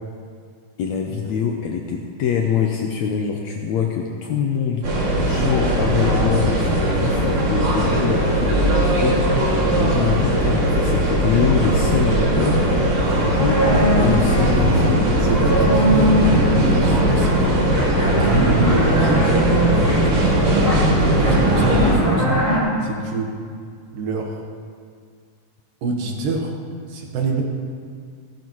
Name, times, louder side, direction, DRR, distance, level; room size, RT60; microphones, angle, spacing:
voice 1, 0.8-4.9 5.2-9.4 9.8-12.8 13.0-15.0, left 7 dB, 75° left, 2 dB, 1.7 m, -24 dB
sound 1, 4.8-21.9, right 1 dB, 60° right, 3.5 m, -19 dB
sound 2, 13.0-22.6, equal, 5° left, 3.4 m, -22 dB
voice 2, 15.2-17.7 18.1-22.3 22.8-23.4 23.9-24.4 25.8-26.5 26.9-27.4, right 3 dB, 75° right, 1 dB, 2.9 m, -26 dB
15.5 x 13.0 x 3.1 m, 2.1 s
omnidirectional pair, 3.9 m